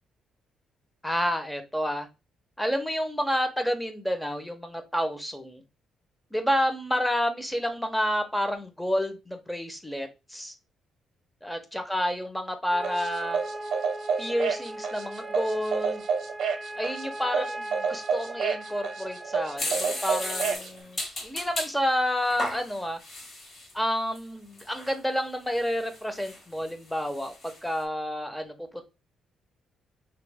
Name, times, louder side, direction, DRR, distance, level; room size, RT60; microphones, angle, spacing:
voice 1, 1.0-2.1 2.6-5.6 6.3-10.5 11.4-13.4 14.2-16.0 16.8-23.0 23.7-28.8, equal, 5° left, 7 dB, 0.8 m, -29 dB
sound 1, 12.7-20.5, right 1 dB, 15° right, 0.4 m, -39 dB
sound 2, 12.8-20.7, right 6 dB, 60° right, 0.7 m, -29 dB
sound 3, 19.6-21.7 22.2-23.7 24.1-24.2 24.6-25.0 25.5-26.7 27.0-27.6, left 1 dB, 45° left, 1.8 m, -35 dB
3.0 x 3.0 x 3.5 m, 0.27 s
cardioid pair, 90°, 0 cm